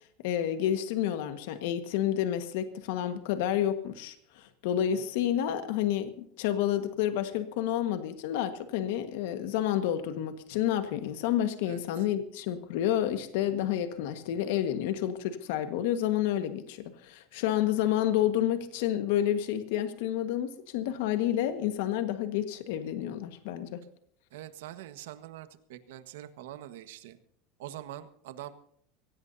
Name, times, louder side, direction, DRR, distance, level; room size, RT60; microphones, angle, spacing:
voice 1, 0.2-23.8, left 11 dB, 65° left, 9 dB, 1.5 m, -29 dB
voice 2, 24.3-27.2 27.6-28.5, right 12 dB, 90° right, 10 dB, 1.5 m, -44 dB
24.0 x 17.0 x 2.8 m, 0.65 s
supercardioid pair, 175°, 0 cm